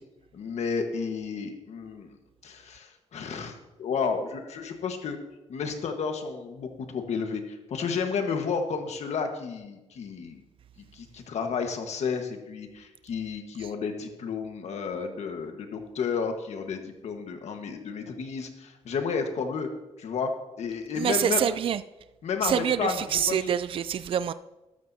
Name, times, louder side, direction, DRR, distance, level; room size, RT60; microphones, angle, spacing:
voice 1, 0.3-2.1 2.4-5.2 5.5-10.4 10.9-19.7 20.0-20.3 20.6-21.4 22.2-23.5, left 5 dB, 80° left, 5 dB, 1.4 m, -32 dB
voice 2, 21.0-21.8 22.4-24.3, right 9 dB, 55° right, 14 dB, 0.3 m, -26 dB
13.0 x 13.0 x 2.8 m, 1.0 s
cardioid pair, 100°, 11 cm